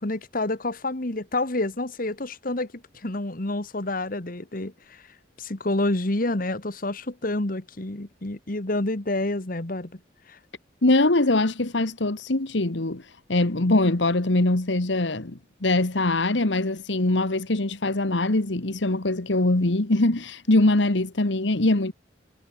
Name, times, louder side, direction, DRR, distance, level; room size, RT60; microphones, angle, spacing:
voice 1, 0.0-5.0 5.4-10.0 10.3-10.4, left 2 dB, 50° left, 1.7 m, -28 dB
voice 2, 10.8-13.0 13.3-21.9, left 2 dB, 75° left, 1.6 m, -22 dB
head